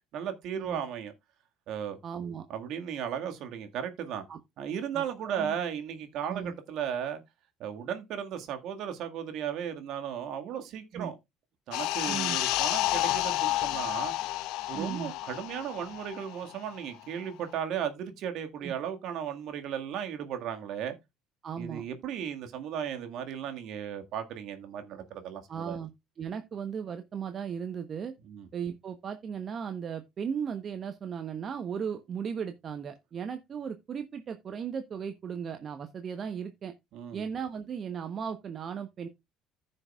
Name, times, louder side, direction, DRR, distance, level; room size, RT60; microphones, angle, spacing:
voice 1, 0.1-1.1 1.7-2.0 2.5-4.2 4.6-7.2 7.6-11.2 11.7-14.1 14.7-21.0 21.6-25.8 28.3-28.5 36.9-37.3, right 8 dB, 60° right, 1.8 m, -35 dB
voice 2, 2.0-2.4 4.3-4.4 4.9-5.6 6.3-6.5 10.9-11.1 12.1-12.4 14.7-15.1 18.6-18.7 21.4-21.8 25.5-25.9 26.2-28.1 28.5-36.7 37.1-39.1, right 7 dB, 45° right, 1.0 m, -36 dB
sound 1, 11.7-16.8 17.1-17.3, left 16 dB, 65° left, 0.6 m, -30 dB
14.5 x 6.5 x 2.4 m
hypercardioid pair, 60°, 0 cm